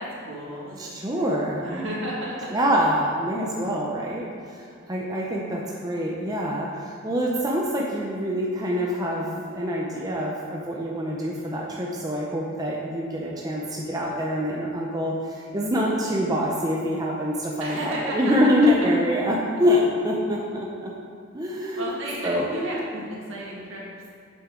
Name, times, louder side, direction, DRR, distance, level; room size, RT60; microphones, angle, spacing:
voice 1, 0.0-2.5 5.6-5.8 17.6-18.3 21.8-23.8, right 1 dB, 65° right, -5 dB, 1.9 m, -33 dB
voice 2, 0.8-1.6 2.5-20.9 21.3-21.8 22.2-22.5, equal, 20° right, -3 dB, 0.6 m, -25 dB
7.7 x 6.6 x 3.8 m, 2.4 s
head